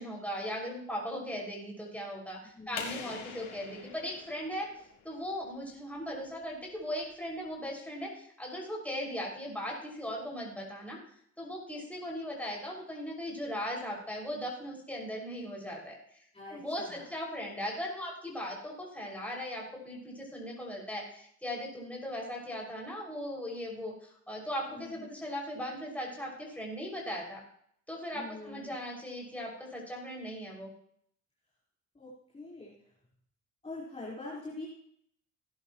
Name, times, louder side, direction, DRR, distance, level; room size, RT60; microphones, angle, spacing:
voice 1, 0.0-4.7 5.0-11.0 11.4-16.0 16.5-27.4 27.9-30.7, equal, 5° left, -2 dB, 6.1 m, -38 dB
voice 2, 2.4-3.2 16.3-17.1 24.7-25.1 28.1-28.7 31.9-32.9 33.6-34.7, left 2 dB, 20° left, -7 dB, 4.4 m, -45 dB
sound 1, 2.8-5.4, left 6 dB, 80° left, 3.3 m, -44 dB
18.0 x 11.0 x 3.1 m, 0.66 s
cardioid pair, 90°, 30 cm